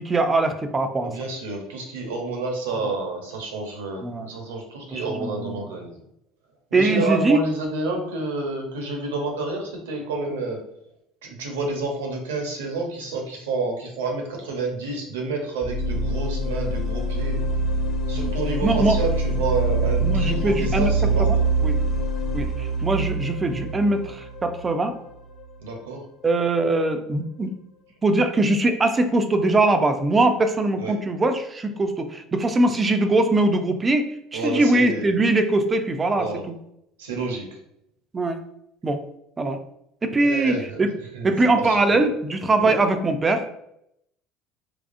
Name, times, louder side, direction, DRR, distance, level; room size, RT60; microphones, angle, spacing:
voice 1, 0.0-1.1 4.0-4.3 4.9-5.7 6.7-7.4 18.1-18.3 18.6-19.0 20.0-20.9 21.2-21.4 21.6-21.8 22.3-25.0 26.2-27.5 28.0-36.5 38.1-38.4 38.8-39.0 39.4-39.6 40.0-40.9 41.2-43.5, right 2 dB, 25° right, 7 dB, 0.5 m, -22 dB
voice 2, 1.0-6.0 6.7-10.6 11.2-17.4 18.1-21.4 25.6-26.0 30.8-30.9 34.3-35.1 36.1-36.4 37.0-37.5 40.2-41.3 41.6-42.1 42.6-42.8, right 3 dB, 80° right, 1 dB, 0.9 m, -29 dB
sound 1, 15.6-25.4, right 2 dB, 50° left, 1.1 m, -24 dB
3.5 x 3.2 x 2.5 m, 0.77 s
hypercardioid pair, 70°, 0 cm